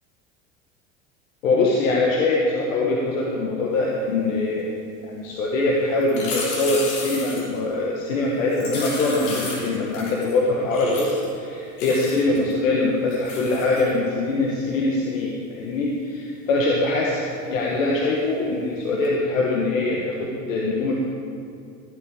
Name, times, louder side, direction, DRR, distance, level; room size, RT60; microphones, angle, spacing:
voice 1, 1.4-4.7 5.1-20.9, left 2 dB, 80° left, -2 dB, 1.6 m, -23 dB
sound 1, 6.0-7.6 8.5-10.4 10.7-11.3 11.8-12.5 13.1-13.9 19.0-19.1, left 3 dB, 65° left, 3.5 m, -33 dB
14.5 x 8.7 x 4.9 m, 2.5 s
hypercardioid pair, 100°, 39 cm